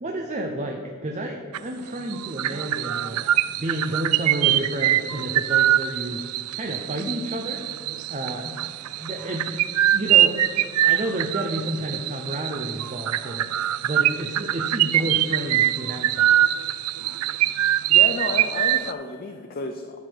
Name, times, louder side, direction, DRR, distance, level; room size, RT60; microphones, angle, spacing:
voice 1, 0.0-3.3 3.6-6.2 6.5-7.6 8.1-8.5 8.9-9.6 9.9-10.4 10.8-13.5 13.8-16.5, right 1 dB, 30° right, 2 dB, 0.7 m, -30 dB
sound 1, 1.5-1.8 2.1-18.9, right 13 dB, 80° right, 0.4 m, -23 dB
voice 2, 17.9-20.1, left 3 dB, 40° left, 5 dB, 0.5 m, -31 dB
12.0 x 6.8 x 4.5 m, 2.2 s
head